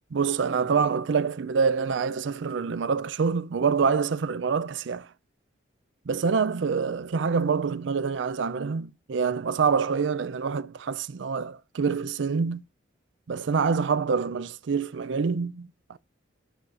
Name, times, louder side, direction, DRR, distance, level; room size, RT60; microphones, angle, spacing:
voice 1, 0.1-5.1 6.1-12.6 13.3-16.0, right 5 dB, 70° right, 0.4 m, -26 dB
13.0 x 5.6 x 2.5 m
head